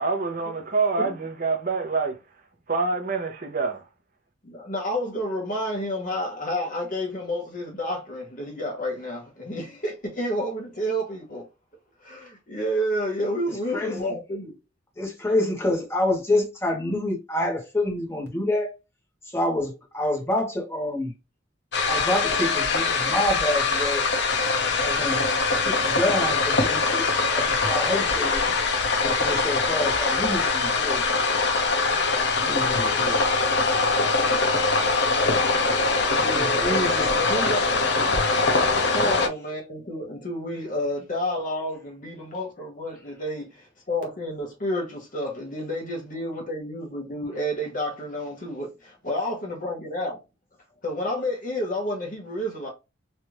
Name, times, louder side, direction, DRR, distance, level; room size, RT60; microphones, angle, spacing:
voice 1, 0.0-2.2 2.7-3.8, right 4 dB, 45° right, 0.7 m, -26 dB
voice 2, 4.4-11.5 12.0-14.5 36.2-37.7 38.0-50.2 50.8-52.7, equal, 45° left, 1.1 m, -30 dB
voice 3, 13.5-14.1 15.0-18.7 19.2-21.1 21.8-24.1 24.8-25.2 25.6-28.4 29.0-31.0 32.3-33.3 36.2-37.6, left 1 dB, 15° left, 1.1 m, -28 dB
sound 1, 21.7-39.3, left 3 dB, 60° left, 0.7 m, -23 dB
3.2 x 2.5 x 3.0 m
head